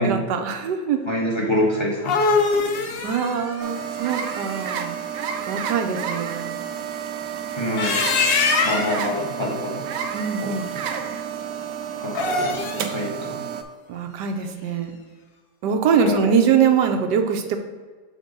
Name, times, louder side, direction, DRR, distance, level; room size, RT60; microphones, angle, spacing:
voice 1, 0.0-1.0 3.0-5.0 5.5-6.6 10.1-10.7 13.9-15.0 15.6-17.6, right 7 dB, 85° right, 6 dB, 1.3 m, -23 dB
voice 2, 1.0-2.2 7.6-8.0 8.6-9.8 10.4-10.5 12.0-12.5 12.7-13.4 16.0-16.3, left 1 dB, 20° left, -4 dB, 1.1 m, -25 dB
sound 1, 1.8-4.8 7.6-9.1 12.0-12.9, left 4 dB, 55° left, 0.6 m, -23 dB
sound 2, 3.6-13.6, right 8 dB, 65° right, 0.9 m, -30 dB
6.5 x 3.5 x 5.2 m, 1.4 s
omnidirectional pair, 1.8 m